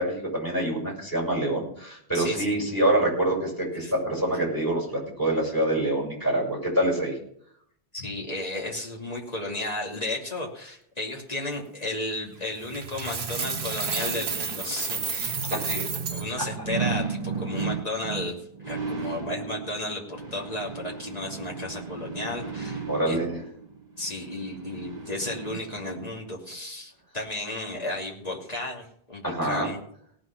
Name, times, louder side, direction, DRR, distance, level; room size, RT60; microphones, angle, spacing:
voice 1, 0.0-7.2 22.9-23.4 29.2-29.7, right 1 dB, 15° left, -2 dB, 6.2 m, -26 dB
voice 2, 2.1-2.6 3.8-3.9 7.9-23.2 24.0-29.8, left 2 dB, 35° left, -2 dB, 2.9 m, -34 dB
sound 1, 12.2-26.1 26.5-26.6, right 5 dB, 40° right, 1.6 m, -35 dB
Coin (dropping), 12.7-16.2, right 5 dB, 65° right, 1.3 m, -31 dB
18.0 x 6.3 x 6.0 m, 0.68 s
omnidirectional pair, 1.2 m